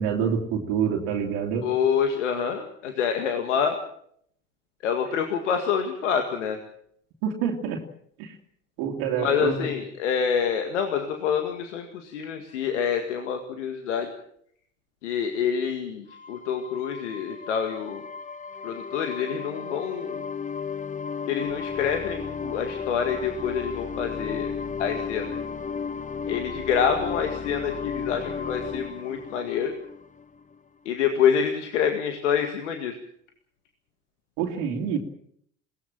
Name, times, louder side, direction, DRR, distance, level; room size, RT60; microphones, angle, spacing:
voice 1, 0.0-1.7 7.2-7.8 8.2-8.4 8.8-9.7 34.4-35.0, right 7 dB, 70° right, 2 dB, 2.7 m, -27 dB
voice 2, 1.6-3.8 4.8-6.6 9.2-14.1 15.0-18.0 18.6-20.2 21.3-24.5 24.8-25.4 26.3-29.7 30.9-32.9, left 7 dB, 85° left, 5 dB, 2.0 m, -27 dB
sound 1, 16.1-30.5, left 6 dB, 20° left, 1.3 m, -34 dB
22.0 x 18.0 x 7.6 m, 0.66 s
hypercardioid pair, 60°, 35 cm